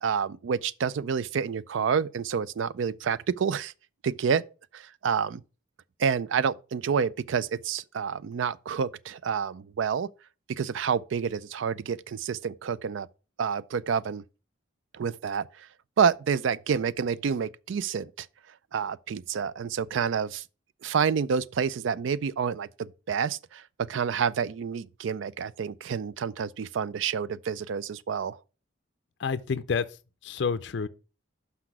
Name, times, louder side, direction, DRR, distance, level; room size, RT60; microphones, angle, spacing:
voice 1, 0.0-3.7 4.0-4.4 4.7-5.4 6.0-10.1 10.5-13.1 13.4-14.2 14.9-15.7 16.0-18.3 18.7-20.4 20.8-28.4, right 6 dB, 75° right, 0.4 m, -28 dB
voice 2, 29.2-29.9 30.2-30.9, left 5 dB, 60° left, 0.4 m, -28 dB
6.0 x 5.7 x 6.0 m
head